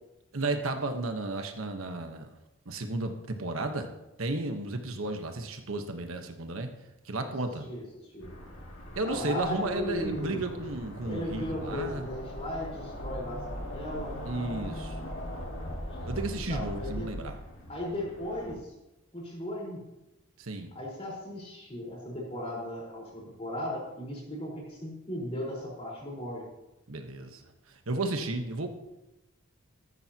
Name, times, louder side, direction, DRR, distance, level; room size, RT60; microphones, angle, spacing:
voice 1, 0.3-2.3 2.6-3.9 4.2-6.7 7.0-7.7 8.9-12.1 14.2-15.0 16.1-17.4 20.4-20.7 26.9-28.7, right 2 dB, 85° right, 5 dB, 1.3 m, -33 dB
sound 1, 8.2-18.5, equal, 65° left, 2.5 m, -40 dB
voice 2, 9.0-10.4 11.0-14.2 16.5-17.1 17.7-18.7 19.1-19.8 20.7-26.4, left 1 dB, 30° left, -3 dB, 4.5 m, -36 dB
14.5 x 14.0 x 2.9 m, 0.96 s
head